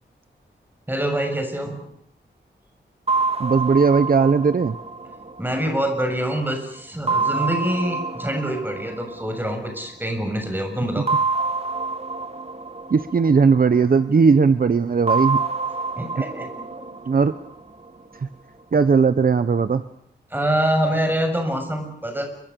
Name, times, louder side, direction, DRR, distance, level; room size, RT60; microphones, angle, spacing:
voice 1, 0.9-1.9 5.4-11.1 16.0-16.5 16.8-16.9 20.3-22.3, right 1 dB, 10° right, 5 dB, 7.0 m, -25 dB
sound 1, 3.1-6.4 7.1-10.0 11.1-14.2 15.1-18.2, right 4 dB, 35° right, 1.9 m, -27 dB
voice 2, 3.4-4.7 12.9-15.4 17.1-17.3 18.7-19.8, right 5 dB, 50° right, 12 dB, 1.0 m, -17 dB
29.0 x 24.5 x 6.9 m, 0.67 s
wide cardioid pair, 130°, 18 cm